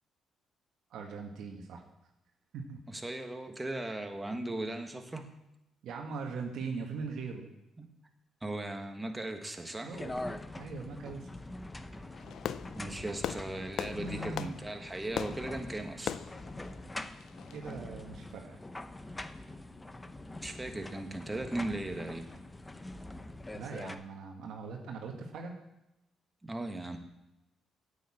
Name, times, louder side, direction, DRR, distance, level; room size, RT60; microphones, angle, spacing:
voice 1, 0.9-1.8 2.5-2.8 3.8-3.9 5.8-7.5 9.8-11.3 13.9-14.5 17.5-18.6 23.5-25.6, right 4 dB, 80° right, 1 dB, 1.6 m, -41 dB
voice 2, 2.9-5.3 7.8-7.9 8.4-10.0 12.7-16.1 20.4-22.3 26.4-27.0, right 2 dB, 15° right, 5 dB, 1.6 m, -38 dB
sound 1, 9.9-23.9, left 2 dB, 15° left, 0.8 m, -44 dB
Fireworks, 12.1-17.7, left 9 dB, 70° left, 0.4 m, -41 dB
9.0 x 6.9 x 8.5 m, 0.89 s
cardioid pair, 90°, 0 cm